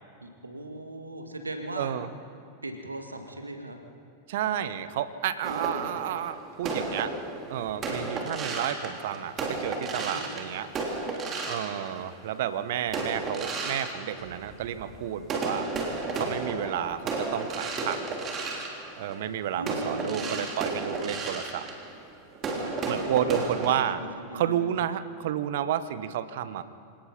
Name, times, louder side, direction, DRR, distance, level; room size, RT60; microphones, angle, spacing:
voice 1, 0.2-2.0 2.6-3.8 5.4-5.9 9.9-10.3 19.6-20.5 22.5-22.7 23.0-24.7, right 1 dB, 80° right, 5 dB, 2.0 m, -39 dB
voice 2, 1.8-2.1 4.3-7.1 7.5-10.7 11.5-15.7 16.2-18.0 19.0-21.7 22.9-24.0 24.3-26.6, right 10 dB, 55° right, 13 dB, 1.0 m, -31 dB
sound 1, 5.4-12.4 12.9-14.9 15.2-23.7, right 3 dB, 25° right, 3.3 m, -33 dB
26.5 x 18.0 x 5.7 m, 2.4 s
figure-of-eight pair, 90°, 0 cm